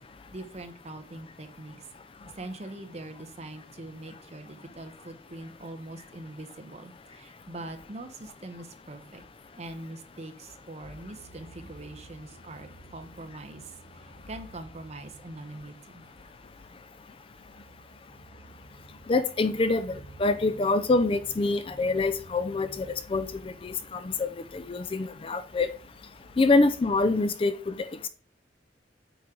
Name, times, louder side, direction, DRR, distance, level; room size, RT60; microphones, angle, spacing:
voice 1, 0.3-1.9 2.3-9.2 9.6-16.0, right 2 dB, 35° right, 0.9 m, -43 dB
sound 1, 11.0-27.2, right 2 dB, 55° left, 3.0 m, -53 dB
voice 2, 19.1-25.7 26.4-27.9, left 3 dB, 30° left, 0.4 m, -26 dB
8.1 x 4.4 x 3.8 m
head